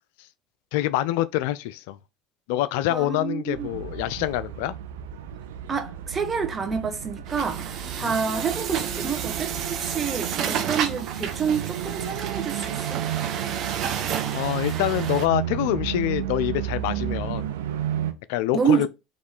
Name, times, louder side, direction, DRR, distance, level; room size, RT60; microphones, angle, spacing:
voice 1, 0.7-2.0 2.5-4.8 8.0-8.1 14.3-17.6 18.3-18.9, left 14 dB, 75° left, 0.4 m, -26 dB
voice 2, 2.9-3.7 5.7-13.0 18.5-18.9, right 6 dB, 30° right, 1.2 m, -28 dB
sound 1, 3.5-18.1, right 11 dB, 85° right, 0.6 m, -32 dB
Truck, 7.3-15.3, right 8 dB, 55° right, 0.9 m, -31 dB
4.1 x 3.1 x 3.6 m
hypercardioid pair, 85°, 0 cm